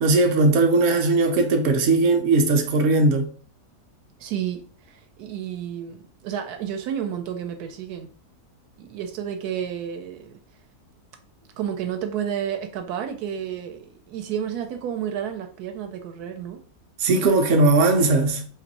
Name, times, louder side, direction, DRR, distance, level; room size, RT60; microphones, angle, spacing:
voice 1, 0.0-3.3 17.0-18.4, right 2 dB, 60° right, 0.7 m, -19 dB
voice 2, 4.2-8.1 8.8-10.4 11.6-16.6, right 9 dB, 75° right, 1.1 m, -31 dB
2.8 x 2.6 x 3.9 m
omnidirectional pair, 1.7 m